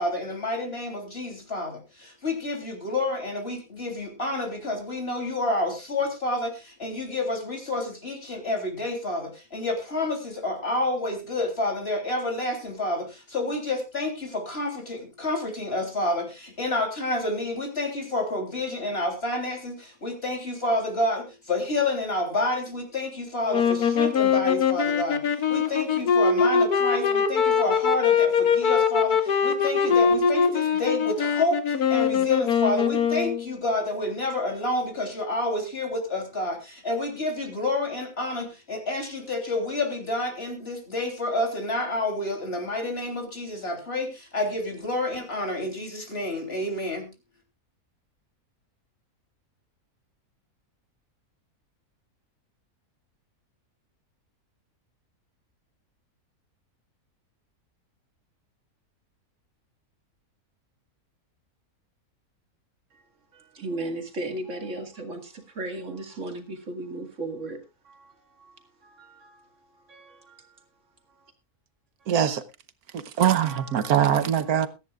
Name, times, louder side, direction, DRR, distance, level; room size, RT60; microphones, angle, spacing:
voice 1, 0.0-47.1, left 2 dB, 40° left, 3.6 m, -29 dB
sound 1, 23.5-33.5, left 6 dB, 80° left, 1.8 m, -22 dB
voice 2, 63.3-69.5 69.9-70.6 73.4-74.2, right 2 dB, 50° right, 2.4 m, -37 dB
voice 3, 72.1-72.4 72.9-74.7, right 9 dB, 75° right, 1.5 m, -22 dB
22.5 x 10.5 x 2.4 m
omnidirectional pair, 1.6 m